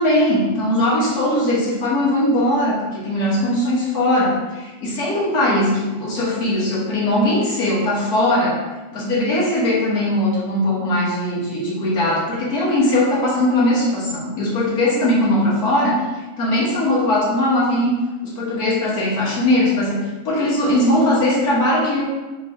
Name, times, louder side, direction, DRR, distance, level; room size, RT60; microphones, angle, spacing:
voice 1, 0.0-8.6 8.9-16.0 16.4-17.9 18.2-22.0, left 1 dB, 85° left, -6 dB, 1.8 m, -19 dB
4.0 x 3.3 x 3.6 m, 1.2 s
omnidirectional pair, 1.6 m